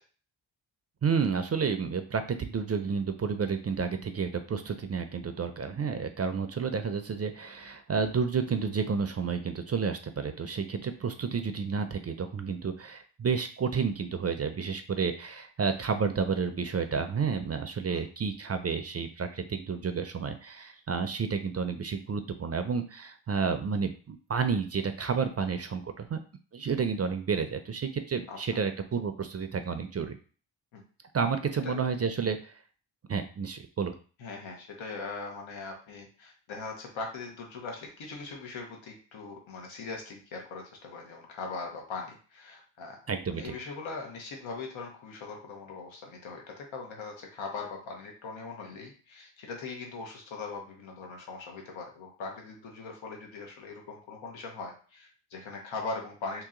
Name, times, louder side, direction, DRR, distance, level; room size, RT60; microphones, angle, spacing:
voice 1, 1.0-26.2 26.5-30.2 31.1-32.5 33.1-34.0 43.1-43.5, right 5 dB, 35° right, 8 dB, 0.4 m, -30 dB
voice 2, 34.2-43.0 43.3-56.4, left 4 dB, 85° left, 1 dB, 1.0 m, -40 dB
2.9 x 2.9 x 3.7 m, 0.39 s
cardioid pair, 80°, 45 cm